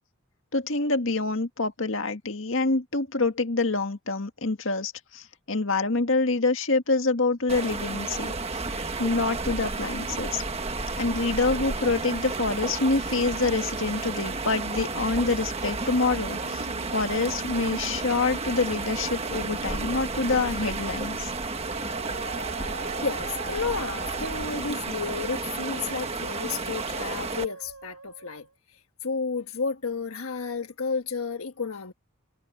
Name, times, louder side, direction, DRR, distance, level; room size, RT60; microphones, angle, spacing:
voice 1, 0.5-8.3 8.7-10.4 11.0-21.3, left 3 dB, 65° left, 1.9 m, -26 dB
sound 1, 7.5-27.5, right 3 dB, 30° right, 1.4 m, -32 dB
Musical instrument, 15.5-28.5, right 3 dB, 90° right, 7.4 m, -43 dB
voice 2, 23.0-31.9, left 5 dB, 85° left, 1.4 m, -32 dB
head